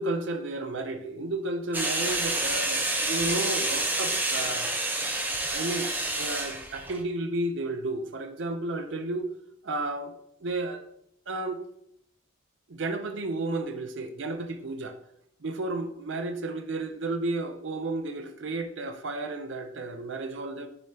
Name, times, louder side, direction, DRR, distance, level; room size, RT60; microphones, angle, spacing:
voice 1, 0.0-4.7 5.4-5.9 6.2-9.3 9.6-10.1 10.4-10.8 11.3-11.6 12.7-15.0 15.4-20.7, right 2 dB, 65° right, 0.6 m, -32 dB
sound 1, 1.7-7.0, right 2 dB, 10° right, 0.5 m, -28 dB
6.8 x 4.2 x 3.4 m
head